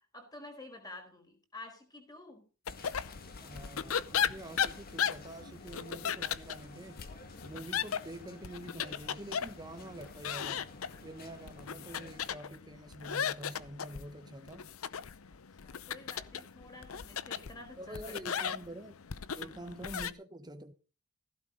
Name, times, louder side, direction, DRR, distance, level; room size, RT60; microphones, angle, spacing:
voice 1, 0.0-2.5 15.3-18.6 19.3-19.6, left 2 dB, 20° left, 4.6 m, -50 dB
sound 1, 2.7-20.1, left 8 dB, 80° left, 0.7 m, -37 dB
sound 2, 2.7-12.3, left 3 dB, 45° left, 2.2 m, -52 dB
voice 2, 3.4-7.0 7.4-10.7 11.0-14.7 17.8-19.0 19.3-20.7, right 1 dB, 20° right, 1.3 m, -46 dB
15.5 x 12.5 x 4.1 m
head